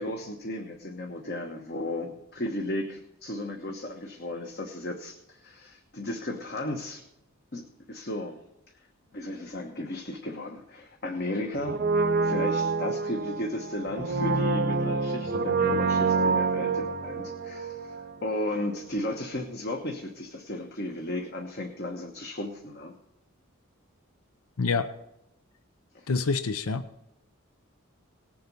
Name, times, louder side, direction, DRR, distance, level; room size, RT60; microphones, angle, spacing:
voice 1, 0.0-7.0 7.5-8.4 9.1-11.8 12.2-22.9 25.9-26.1, left 1 dB, 50° left, 3 dB, 1.2 m, -35 dB
Brass instrument, 11.6-18.5 18.7-18.8, right 4 dB, 45° right, 0.7 m, -27 dB
voice 2, 24.6-24.9 26.1-26.9, left 4 dB, 85° left, 12 dB, 0.7 m, -26 dB
18.5 x 7.7 x 5.4 m, 0.86 s
head